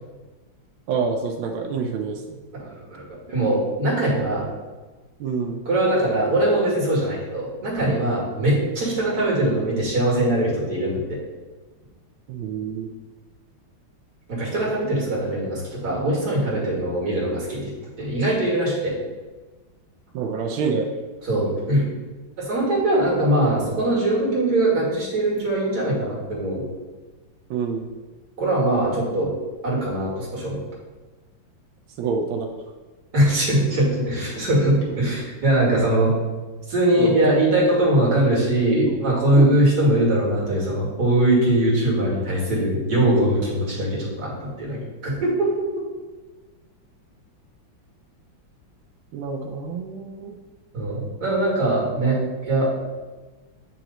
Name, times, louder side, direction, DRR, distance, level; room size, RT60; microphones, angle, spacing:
voice 1, 0.9-2.4 5.2-5.6 12.3-12.9 20.1-20.9 27.5-27.9 32.0-32.5 37.0-37.3 38.7-38.9 39.3-39.6 49.1-50.3, right 5 dB, 90° right, 2 dB, 1.4 m, -27 dB
voice 2, 2.6-4.4 5.7-11.2 14.3-17.7 18.0-18.9 21.2-21.8 22.4-26.6 28.4-29.3 29.6-30.6 33.1-36.1 36.7-45.5 50.7-52.2 52.4-52.7, right 1 dB, 55° right, -5 dB, 2.3 m, -21 dB
8.9 x 3.0 x 3.9 m, 1.3 s
omnidirectional pair, 2.1 m